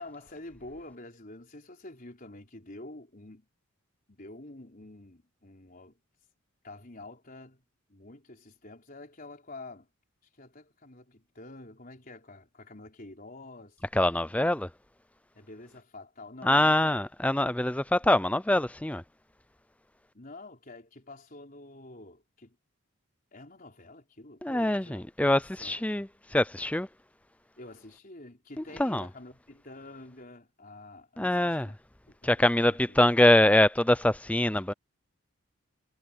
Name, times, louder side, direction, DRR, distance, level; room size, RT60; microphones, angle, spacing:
voice 1, 0.0-3.5 4.1-6.0 6.6-7.6 7.9-9.9 10.4-13.8 15.3-17.0 20.1-22.6 23.3-25.0 25.3-26.1 27.6-31.8 32.1-33.0, left 2 dB, 40° left, 4.4 m, -48 dB
voice 2, 13.9-14.7 16.4-19.0 24.4-26.9 28.8-29.1 31.2-31.7 32.2-34.7, left 1 dB, 5° left, 0.6 m, -24 dB
head